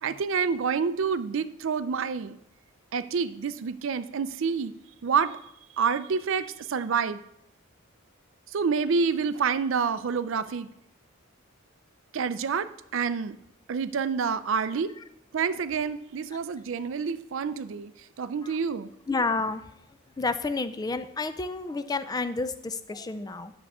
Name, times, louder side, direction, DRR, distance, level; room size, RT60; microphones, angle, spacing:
voice 1, 0.0-2.4 2.9-4.7 5.0-5.4 5.8-7.2 8.5-10.7 12.1-13.4 13.7-14.9 15.3-17.9 18.2-18.9, right 5 dB, 60° right, 13 dB, 0.4 m, -28 dB
voice 2, 19.1-19.6 20.2-23.5, left 3 dB, 20° left, 11 dB, 0.3 m, -30 dB
10.5 x 7.0 x 3.6 m, 0.79 s
head